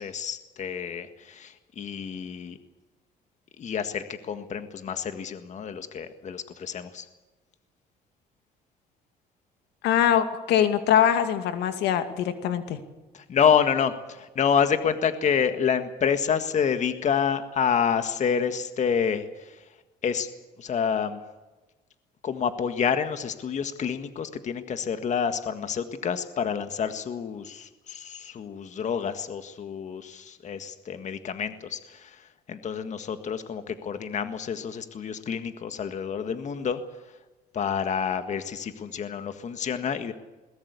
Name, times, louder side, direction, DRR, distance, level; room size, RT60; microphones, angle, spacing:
voice 1, 0.0-2.6 3.6-7.1 13.1-19.6 20.0-20.3 20.6-21.2 22.2-32.2 32.5-36.8 37.5-40.1, left 7 dB, 45° left, 9 dB, 1.7 m, -28 dB
voice 2, 9.8-12.8, left 9 dB, 85° left, 9 dB, 2.3 m, -23 dB
21.5 x 19.5 x 8.3 m, 1.2 s
cardioid pair, 110°, 17 cm